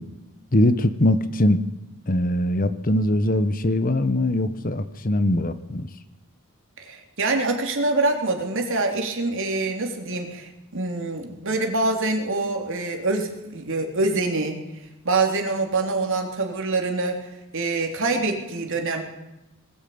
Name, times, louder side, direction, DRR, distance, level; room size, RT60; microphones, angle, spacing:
voice 1, 0.5-1.6 2.1-5.9, left 1 dB, 40° left, 12 dB, 1.1 m, -21 dB
voice 2, 6.8-14.6 15.0-19.0, right 3 dB, 60° right, 3 dB, 3.4 m, -25 dB
20.5 x 16.5 x 8.7 m, 0.96 s
head